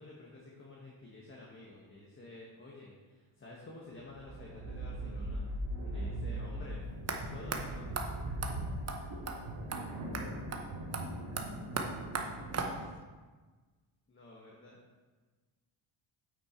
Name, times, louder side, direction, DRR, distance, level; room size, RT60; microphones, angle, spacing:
voice 1, 0.0-5.4 5.8-6.8 7.1-7.9 14.1-14.8, left 2 dB, 25° left, -3 dB, 1.4 m, -51 dB
sound 1, 4.0-12.9, right 1 dB, 85° right, 2.0 m, -40 dB
sound 2, 7.1-7.2 7.5-7.6 8.0-8.1 8.4-8.5 8.9-9.0 9.3-9.4 9.7-9.8 10.1-10.2 10.5-10.6 10.9-13.0, right 4 dB, 35° right, 0.9 m, -37 dB
9.1 x 5.7 x 4.5 m, 1.3 s
cardioid pair, 115°, 47 cm